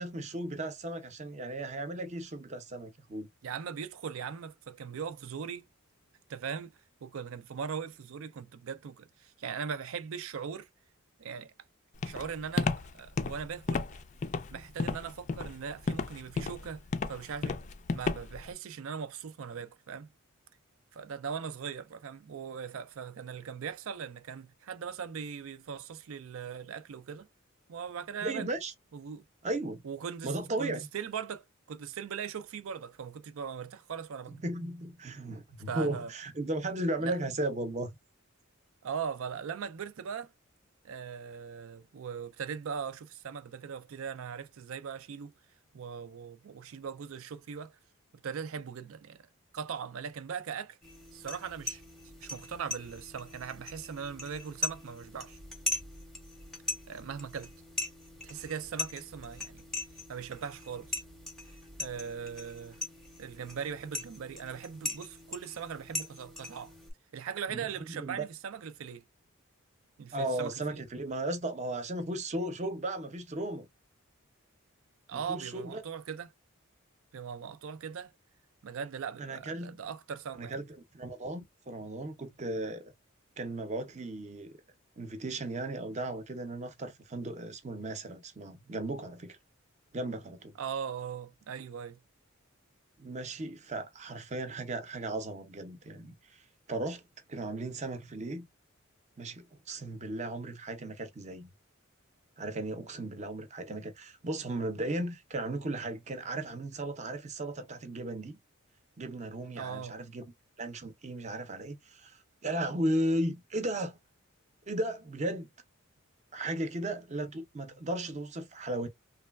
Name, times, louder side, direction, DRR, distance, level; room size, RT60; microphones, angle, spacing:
voice 1, 0.0-3.3 28.2-28.7 29.4-29.8 30.2-30.9 34.3-37.9 67.5-68.3 70.1-73.7 75.1-75.8 79.2-79.8 80.3-80.6 80.9-82.9 83.4-84.5 85.0-89.4 89.9-90.5 93.0-96.1 96.7-97.0 97.3-98.5 99.2-101.5 102.4-108.4 109.0-110.3 110.6-112.2 112.4-114.0 114.7-115.5 116.3-118.9, right 1 dB, 35° right, 0.6 m, -35 dB
voice 2, 3.4-5.6 6.3-10.7 11.2-11.5 12.0-13.8 14.5-16.8 17.1-17.6 17.9-20.1 20.9-27.3 27.7-28.5 28.9-29.2 29.8-34.4 35.7-36.1 37.0-37.2 38.8-40.3 40.8-45.3 45.7-47.8 48.2-49.3 49.5-50.8 51.1-51.8 52.2-55.4 56.9-57.5 58.2-59.6 60.1-61.0 61.8-62.8 63.2-66.7 67.1-69.0 70.0-70.8 75.1-76.3 77.1-78.1 78.6-80.6 90.6-92.0 109.6-110.0, right 7 dB, 70° right, 0.4 m, -40 dB
Walk footsteps, 12.0-18.5, left 4 dB, 35° left, 0.3 m, -32 dB
sound 1, 50.8-66.9, left 2 dB, ahead, 0.7 m, -40 dB
3.2 x 2.3 x 2.3 m
head